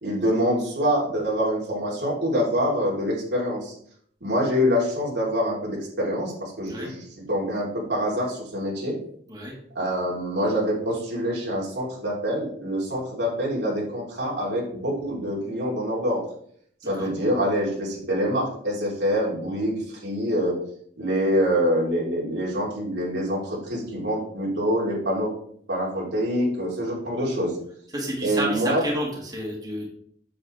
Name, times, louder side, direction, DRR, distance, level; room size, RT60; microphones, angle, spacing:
voice 1, 0.0-3.7 4.2-9.0 9.8-16.2 16.9-20.5 21.0-25.3 25.7-27.6 28.2-28.8, equal, 90° right, -5 dB, 3.8 m, -25 dB
voice 2, 27.9-29.9, right 1 dB, 25° right, -3 dB, 2.1 m, -30 dB
7.8 x 7.7 x 3.5 m, 0.63 s
head